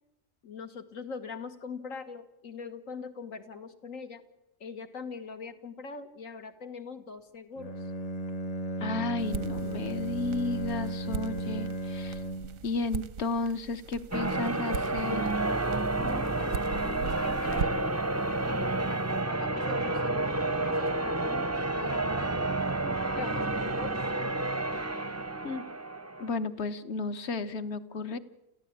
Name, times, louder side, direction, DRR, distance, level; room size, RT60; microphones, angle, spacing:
voice 1, 0.4-4.2 4.6-7.9 16.0-17.9 18.3-22.4 23.2-24.0, left 5 dB, 80° left, 8 dB, 2.0 m, -42 dB
Bowed string instrument, 7.6-12.7, right 1 dB, 35° left, 0.9 m, -35 dB
voice 2, 8.8-12.2 12.6-15.3 25.4-25.6 26.2-28.2, left 3 dB, 55° left, 11 dB, 1.3 m, -33 dB
sound 1, 9.2-18.0, right 6 dB, 90° right, 1.4 m, -40 dB
Church bell, 14.1-26.4, right 2 dB, 15° right, 0.5 m, -30 dB
28.5 x 15.0 x 8.7 m, 0.93 s
omnidirectional pair, 1.4 m